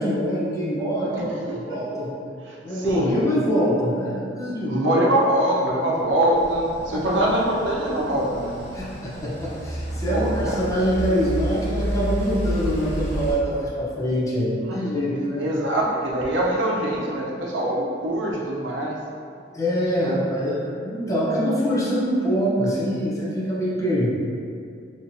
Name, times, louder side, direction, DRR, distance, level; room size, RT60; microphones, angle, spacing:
voice 1, 0.0-2.1 2.6-5.0 6.9-7.0 8.7-15.5 19.5-24.1, equal, 20° left, -6 dB, 0.7 m, -24 dB
voice 2, 1.1-1.8 2.5-3.3 4.6-8.6 10.1-10.6 14.7-14.8 15.4-19.0 20.0-20.2, right 1 dB, 85° right, -3 dB, 0.7 m, -24 dB
sound 1, 6.3-13.3, equal, 70° left, 1.4 m, -30 dB
4.3 x 2.9 x 2.6 m, 2.4 s
head